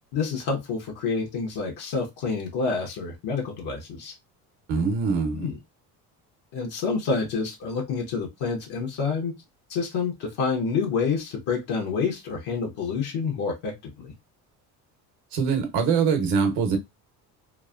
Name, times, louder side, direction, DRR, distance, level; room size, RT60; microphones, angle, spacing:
voice 1, 0.1-4.1 5.3-5.6 6.5-9.3 9.7-14.1, left 5 dB, 65° left, 1.0 m, -28 dB
voice 2, 4.7-5.5 15.3-16.8, right 5 dB, 80° right, 1.1 m, -23 dB
3.1 x 2.1 x 2.4 m
cardioid pair, 110°, 40 cm